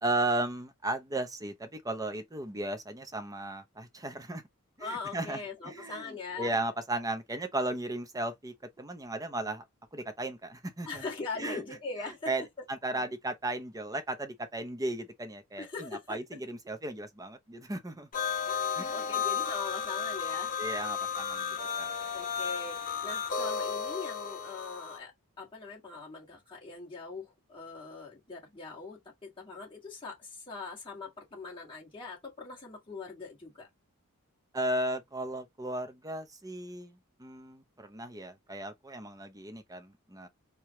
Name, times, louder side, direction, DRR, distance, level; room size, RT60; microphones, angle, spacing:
voice 1, 0.0-4.4 4.8-9.6 9.9-11.0 11.4-11.6 12.3-18.1 18.7-19.2 20.6-21.9 34.5-40.3, right 2 dB, 15° right, 0.6 m, -35 dB
voice 2, 4.8-6.6 10.9-12.3 15.6-16.2 18.5-20.5 22.1-25.1 25.4-33.7, left 4 dB, 25° left, 1.7 m, -41 dB
sound 1, 18.1-25.0, left 6 dB, 40° left, 1.1 m, -33 dB
4.7 x 2.3 x 2.9 m
head